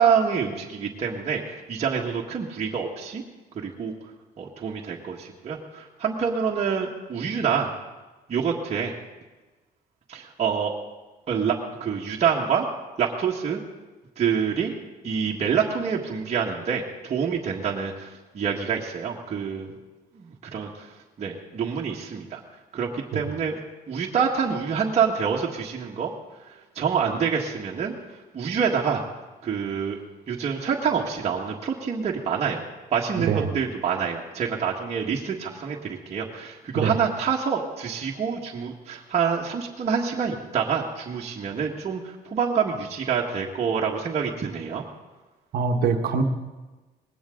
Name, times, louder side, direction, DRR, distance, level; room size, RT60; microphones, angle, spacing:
voice 1, 0.0-3.2 3.5-3.9 4.4-7.7 8.3-8.9 10.1-10.7 11.3-12.6 13.0-13.6 14.2-14.7 15.0-19.7 20.1-22.4 22.7-23.6 23.9-26.1 26.4-27.9 28.3-29.0 29.4-30.0 30.3-32.6 32.9-44.8, right 6 dB, 40° right, -3 dB, 1.6 m, -26 dB
voice 2, 45.5-46.2, right 5 dB, 65° right, 4 dB, 1.2 m, -23 dB
19.5 x 16.5 x 3.8 m, 1.2 s
cardioid pair, 110°, 17 cm